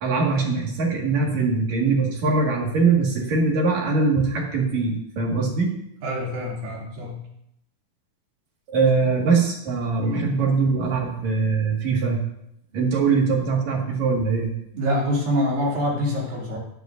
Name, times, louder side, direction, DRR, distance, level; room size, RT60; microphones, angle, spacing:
voice 1, 0.0-5.7 8.7-12.2 12.7-14.5, right 4 dB, 60° right, -1 dB, 3.0 m, -22 dB
voice 2, 6.0-7.2 8.7-9.1 10.0-10.3 14.7-16.6, equal, 80° right, -4 dB, 4.5 m, -26 dB
19.0 x 8.1 x 2.6 m, 0.77 s
omnidirectional pair, 4.0 m